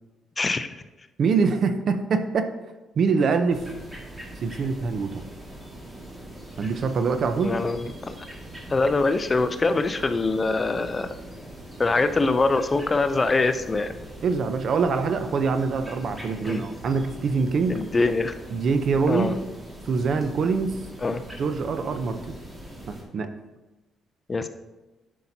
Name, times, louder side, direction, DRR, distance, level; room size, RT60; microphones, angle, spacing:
voice 1, 0.4-0.7 7.4-8.2 8.7-11.1 11.8-13.9 16.4-16.6 17.8-18.3 19.1-19.3 21.0-21.2 24.3-24.5, left 3 dB, 30° left, 10 dB, 0.5 m, -23 dB
voice 2, 1.2-2.5 3.0-3.6 4.4-5.2 6.6-7.6 14.2-17.8 18.5-19.3 19.8-20.7 21.4-22.2 22.9-23.4, right 5 dB, 60° right, 9 dB, 0.7 m, -24 dB
sound 1, 3.5-23.0, right 1 dB, 15° right, 2.0 m, -42 dB
11.0 x 5.7 x 2.8 m, 1.1 s
cardioid pair, 90°, 0 cm